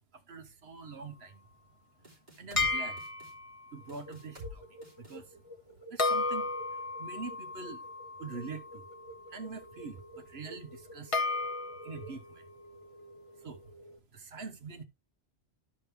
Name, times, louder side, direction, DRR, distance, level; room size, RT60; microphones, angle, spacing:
voice 1, 0.3-1.3 2.4-3.0 3.7-4.6 5.0-5.3 5.9-6.5 7.0-7.8 8.2-8.8 9.3-11.2 11.8-12.4 13.4-13.6 14.1-14.8, right 4 dB, 60° right, 1.3 m, -44 dB
sound 1, 2.0-2.7 3.0-3.3 3.9-4.5 4.8-5.2, left 2 dB, 40° right, 3.4 m, -46 dB
sound 2, 2.6-3.6 6.0-9.1 11.1-12.0, left 3 dB, 30° left, 1.1 m, -33 dB
sound 3, 3.8-14.0, right 1 dB, 80° left, 1.8 m, -52 dB
12.5 x 5.1 x 3.4 m
omnidirectional pair, 1.2 m